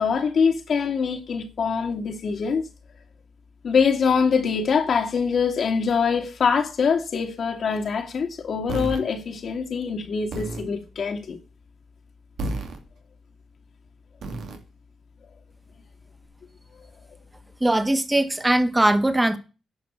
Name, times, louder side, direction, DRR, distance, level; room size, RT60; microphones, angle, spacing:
voice 1, 0.0-2.6 3.6-11.4, left 6 dB, 65° left, 2.2 m, -24 dB
sound 1, 8.7-9.0 10.3-10.7 12.4-12.8 14.2-14.6, right 1 dB, 75° right, 2.6 m, -30 dB
voice 2, 17.6-19.4, right 1 dB, 15° right, 2.1 m, -20 dB
10.5 x 6.0 x 8.7 m
supercardioid pair, 55°, 0 cm